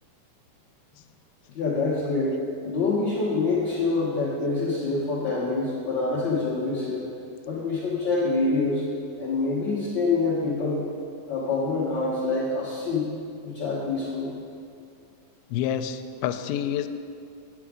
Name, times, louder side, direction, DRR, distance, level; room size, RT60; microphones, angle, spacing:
voice 1, 1.5-2.4 2.6-7.0 7.4-8.8 9.2-10.8 11.3-13.0 13.4-14.3, left 3 dB, 60° left, -9 dB, 1.2 m, -26 dB
voice 2, 15.5-16.9, left 10 dB, 90° left, 9 dB, 2.4 m, -28 dB
10.0 x 7.2 x 5.0 m, 2.5 s
omnidirectional pair, 4.2 m